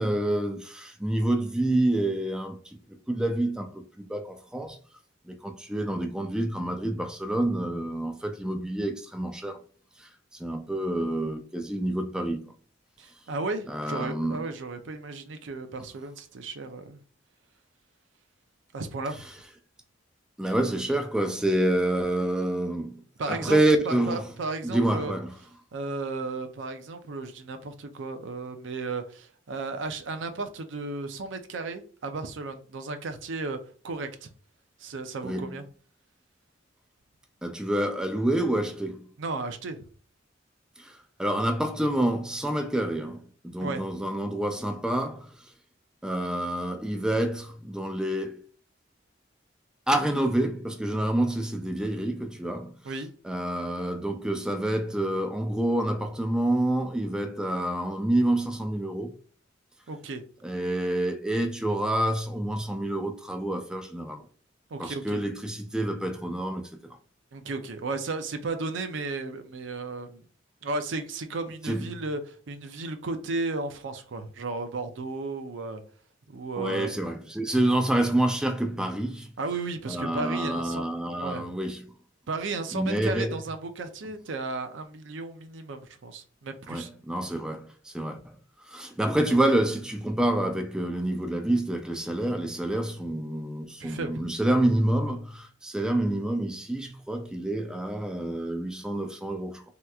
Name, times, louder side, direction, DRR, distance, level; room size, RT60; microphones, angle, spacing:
voice 1, 0.0-2.8 3.1-4.8 5.3-9.6 10.0-10.1 10.4-12.4 13.7-14.5 20.4-24.2 24.6-25.3 35.2-35.6 37.4-39.1 40.8-45.3 46.0-48.4 49.9-52.8 53.2-59.1 60.4-64.2 64.8-67.0 71.6-71.8 76.6-79.3 79.9-81.9 82.7-83.3 86.7-88.4 88.7-99.6, right 1 dB, 5° right, 0.3 m, -28 dB
voice 2, 13.0-17.0 18.7-19.2 23.2-23.6 23.8-25.1 25.7-33.6 33.8-34.3 34.8-35.6 39.2-39.9 43.6-43.8 52.8-53.1 59.9-60.2 64.7-65.2 67.3-70.3 70.6-75.8 76.3-76.9 79.4-80.9 81.2-81.6 82.3-86.9 87.2-87.3 93.8-94.2, right 3 dB, 75° right, 0.5 m, -34 dB
3.3 x 2.9 x 2.3 m
head